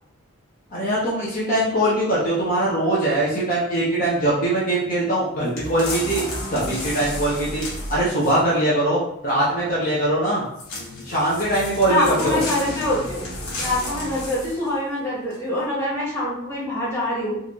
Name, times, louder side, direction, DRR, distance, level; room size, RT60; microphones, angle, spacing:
voice 1, 0.7-6.2 6.5-10.4 11.0-12.4, right 1 dB, 40° left, -8 dB, 0.9 m, -22 dB
sound 1, 5.6-8.6 10.6-14.7 15.3-15.4, left 1 dB, 80° left, 1.3 m, -32 dB
voice 2, 11.9-13.2 13.6-17.4, left 1 dB, 10° left, -8 dB, 1.3 m, -24 dB
4.0 x 2.6 x 3.0 m, 0.76 s
head